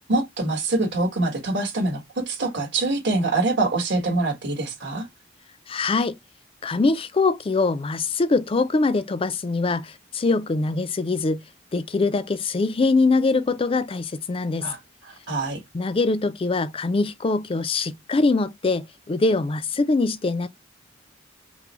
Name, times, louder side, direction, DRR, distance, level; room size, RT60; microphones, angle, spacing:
voice 1, 0.0-5.1 14.6-15.6, right 2 dB, 65° right, 1.4 m, -25 dB
voice 2, 5.7-6.1 6.6-11.4 11.7-14.7 15.7-20.5, left 3 dB, 30° left, 0.4 m, -23 dB
6.0 x 2.0 x 3.0 m
head